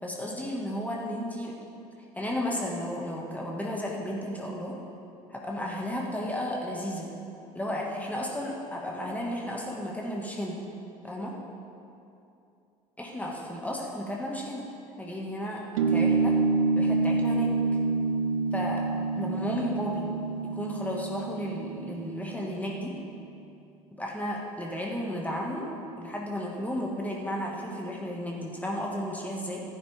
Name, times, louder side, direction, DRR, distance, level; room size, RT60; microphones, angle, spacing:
voice 1, 0.0-1.5 2.2-4.8 5.3-7.1 7.5-10.6 11.0-11.3 13.0-14.7 15.0-15.6 15.9-16.3 16.7-17.5 18.5-18.8 19.2-20.1 20.5-23.0 23.9-29.6, equal, 10° left, -2 dB, 2.2 m, -33 dB
sound 1, 15.8-22.7, right 4 dB, 75° right, 0.6 m, -27 dB
15.5 x 9.7 x 3.7 m, 2.7 s
figure-of-eight pair, 60°, 18 cm